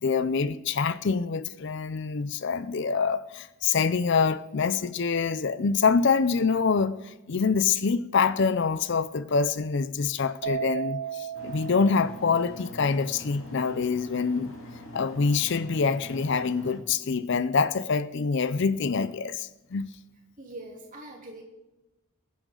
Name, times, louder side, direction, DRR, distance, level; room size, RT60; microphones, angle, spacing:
voice 1, 0.0-14.5 14.9-19.9, left 5 dB, 55° left, 0.5 m, -25 dB
Keyboard (musical), 10.4-12.9, right 7 dB, 65° right, 1.3 m, -35 dB
sound 1, 11.3-16.8, left 1 dB, 70° left, 3.2 m, -44 dB
voice 2, 20.4-21.4, right 2 dB, 35° right, 3.1 m, -42 dB
23.5 x 10.0 x 3.9 m
head